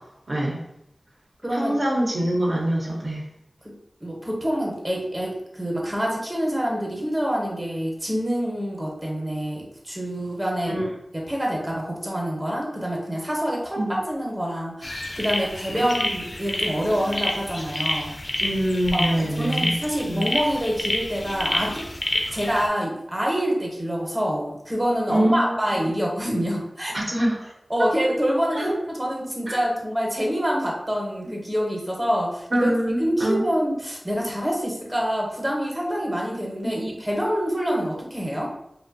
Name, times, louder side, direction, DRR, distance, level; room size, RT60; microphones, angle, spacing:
voice 1, 0.3-0.6 1.5-3.2 10.7-10.9 13.8-13.9 15.7-15.8 18.4-20.3 25.1-25.4 25.7-25.9 26.9-27.5 28.6-28.7 29.5-29.6 32.5-33.4 36.6-36.9, right 1 dB, 60° right, -3 dB, 0.6 m, -24 dB
voice 2, 1.4-1.8 3.6-3.7 4.0-10.9 11.1-18.1 18.9-21.8 22.3-26.9 27.7-32.7 33.0-38.5, equal, 15° right, -2 dB, 0.6 m, -26 dB
Fryers Dawn Atmos, 14.8-22.7, left 1 dB, 50° left, 0.4 m, -29 dB
2.6 x 2.1 x 2.5 m, 0.81 s
wide cardioid pair, 65°, 0 cm